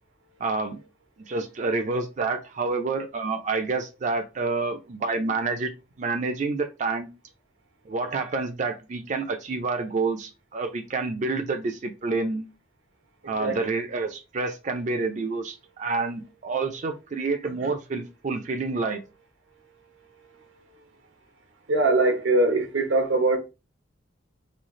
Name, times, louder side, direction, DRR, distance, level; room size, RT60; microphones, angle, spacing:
voice 1, 0.4-0.8 1.3-5.7 6.0-7.1 7.9-12.5 13.3-19.0, right 3 dB, 40° right, 0.4 m, -28 dB
voice 2, 21.7-23.4, right 2 dB, 90° right, 1.0 m, -22 dB
3.1 x 2.3 x 3.6 m
head